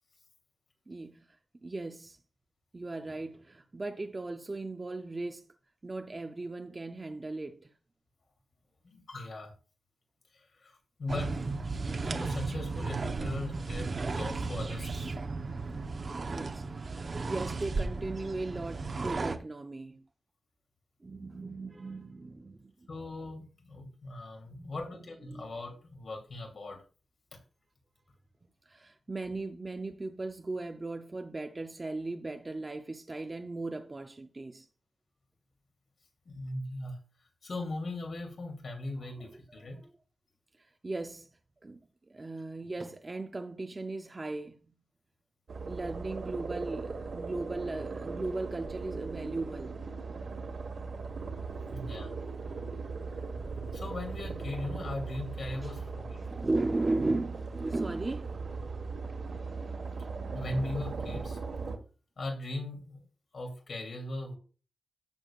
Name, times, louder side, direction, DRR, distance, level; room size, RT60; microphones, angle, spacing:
voice 1, 0.9-1.3 1.6-2.2 2.7-5.5 5.8-7.7 16.3-20.1 21.0-22.7 24.5-25.0 25.3-25.5 28.7-34.7 39.2-39.9 40.6-41.3 41.6-41.8 42.1-44.6 45.7-49.8 51.6-51.9 55.6-55.7 56.2-58.4, right 2 dB, 25° right, 0.6 m, -37 dB
voice 2, 8.8-9.5 10.3-11.6 12.0-15.2 22.9-26.8 36.2-37.0 37.4-39.8 51.7-52.2 53.4-56.2 59.1-59.5 60.3-61.4 62.2-63.0 63.3-64.4, left 2 dB, 50° left, 3.1 m, -39 dB
sound 1, 11.1-19.4, right 3 dB, 40° right, 0.9 m, -35 dB
sound 2, 45.5-61.8, right 4 dB, 55° right, 1.5 m, -39 dB
15.0 x 7.0 x 2.4 m
wide cardioid pair, 170°, 0 cm